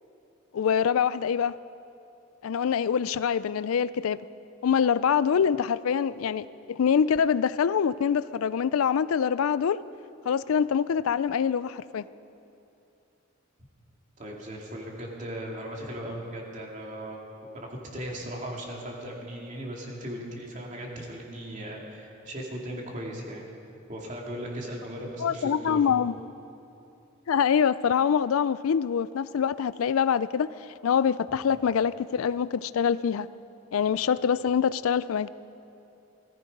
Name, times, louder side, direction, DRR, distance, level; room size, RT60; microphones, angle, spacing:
voice 1, 0.5-1.6 2.4-4.3 4.6-9.8 10.3-12.0 25.2-26.1 27.3-30.5 30.8-33.3 33.7-35.3, left 7 dB, 85° left, 0.4 m, -25 dB
voice 2, 14.2-17.2 17.5-23.4 23.9-25.8 33.8-33.9, equal, 35° right, 2.5 m, -37 dB
18.5 x 14.5 x 5.3 m
head